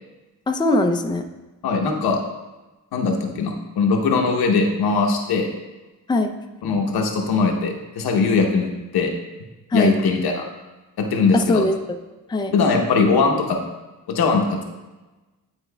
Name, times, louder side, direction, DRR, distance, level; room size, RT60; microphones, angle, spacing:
voice 1, 0.5-1.2 6.1-6.3 9.7-9.9 11.3-12.0 12.3-12.6, left 2 dB, 10° left, 5 dB, 0.4 m, -21 dB
voice 2, 1.6-2.2 2.9-5.5 6.6-9.1 9.7-10.4 11.0-11.6 12.5-13.6 14.1-14.5, left 4 dB, 90° left, 2 dB, 0.9 m, -20 dB
10.0 x 4.3 x 2.2 m, 1.1 s
cardioid pair, 90°, 37 cm